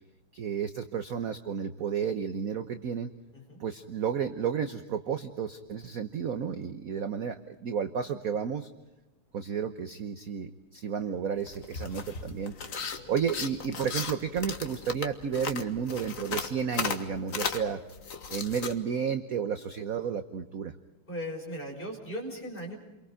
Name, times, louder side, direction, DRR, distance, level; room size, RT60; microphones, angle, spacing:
voice 1, 0.3-3.1 3.6-8.7 9.3-12.5 13.1-17.8 18.3-20.7, right 7 dB, 55° right, 9 dB, 1.1 m, -32 dB
sound 1, 11.4-18.7, left 5 dB, 40° left, 1.6 m, -36 dB
voice 2, 12.8-13.2 21.1-22.8, equal, 20° left, 0 dB, 5.9 m, -38 dB
30.0 x 23.5 x 5.0 m, 1.0 s
omnidirectional pair, 2.4 m